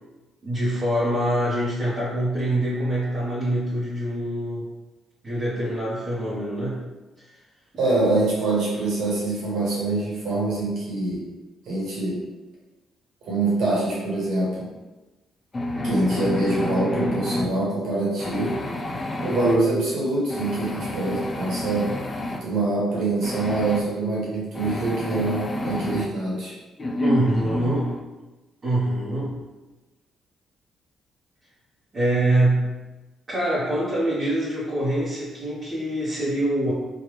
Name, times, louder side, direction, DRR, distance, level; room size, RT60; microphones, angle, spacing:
voice 1, 0.4-4.7 5.2-6.9 7.2-7.3 27.0-27.9 28.6-29.4 31.9-32.8 33.3-36.7, right 1 dB, 35° right, -9 dB, 0.9 m, -24 dB
voice 2, 7.8-11.2 11.6-12.2 13.2-14.7 15.8-18.6 19.2-21.9 22.4-26.5, right 2 dB, 75° right, -5 dB, 1.3 m, -24 dB
sound 1, 15.5-17.5 18.2-19.6 20.3-22.4 23.2-23.8 24.6-26.1 26.8-28.0, left 1 dB, 25° left, 0.4 m, -29 dB
3.2 x 2.4 x 3.1 m, 1.1 s
cardioid pair, 90°, 0 cm